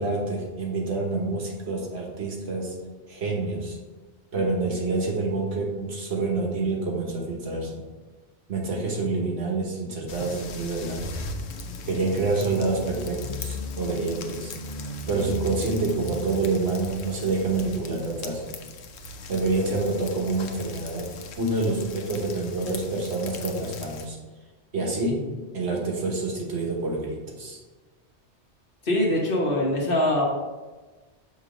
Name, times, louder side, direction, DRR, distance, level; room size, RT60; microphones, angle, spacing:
voice 1, 0.0-2.7 3.1-3.8 4.3-7.8 8.5-11.1 11.8-14.5 15.1-18.5 19.3-21.1 21.4-24.2 24.7-25.3 25.5-27.6, right 3 dB, 70° right, -1 dB, 1.4 m, -27 dB
sound 1, 10.1-24.1, left 1 dB, 70° left, 0.9 m, -37 dB
voice 2, 28.8-30.2, left 1 dB, 50° left, -2 dB, 1.4 m, -23 dB
6.4 x 3.1 x 5.0 m, 1.2 s
omnidirectional pair, 1.2 m